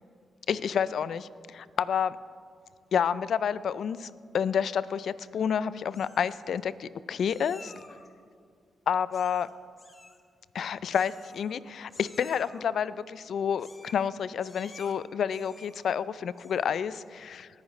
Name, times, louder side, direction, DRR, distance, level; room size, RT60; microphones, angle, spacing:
voice 1, 0.5-2.2 2.9-7.7 8.9-9.5 10.5-17.5, left 7 dB, 75° left, 17 dB, 0.4 m, -29 dB
Meow, 5.2-5.6 5.9-6.6 7.3-8.1 9.1-9.5 9.8-10.2 10.9-11.6 11.9-12.6 13.6-14.1 14.4-14.9 15.3-15.9 16.3-16.7, left 3 dB, 40° left, 1.3 m, -52 dB
19.5 x 9.8 x 3.2 m, 2.1 s
cardioid pair, 60°, 0 cm